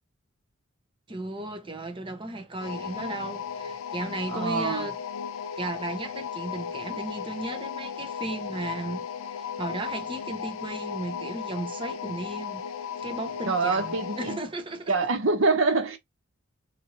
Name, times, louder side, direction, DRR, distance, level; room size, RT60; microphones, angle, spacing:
voice 1, 1.1-5.0 5.6-9.0 9.4-12.6 13.0-14.9, right 2 dB, 25° right, 0.7 m, -35 dB
sound 1, 2.6-14.5, left 7 dB, 75° left, 0.5 m, -35 dB
voice 2, 4.3-4.9 13.5-14.4 14.9-16.0, right 3 dB, 65° right, 0.8 m, -25 dB
2.9 x 2.7 x 2.9 m
head